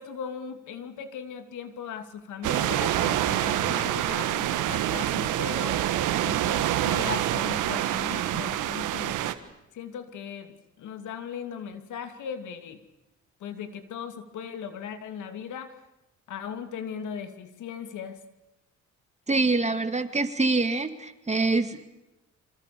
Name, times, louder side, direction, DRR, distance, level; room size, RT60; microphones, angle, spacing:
voice 1, 0.0-5.8 6.2-9.1 9.7-12.8 13.4-15.8 16.3-18.2, left 7 dB, 80° left, 9 dB, 2.6 m, -38 dB
sound 1, 2.4-9.3, right 12 dB, 90° right, 1.6 m, -26 dB
voice 2, 19.3-21.8, right 3 dB, 20° right, 9 dB, 2.3 m, -25 dB
26.5 x 26.0 x 7.0 m, 0.94 s
cardioid pair, 90°, 30 cm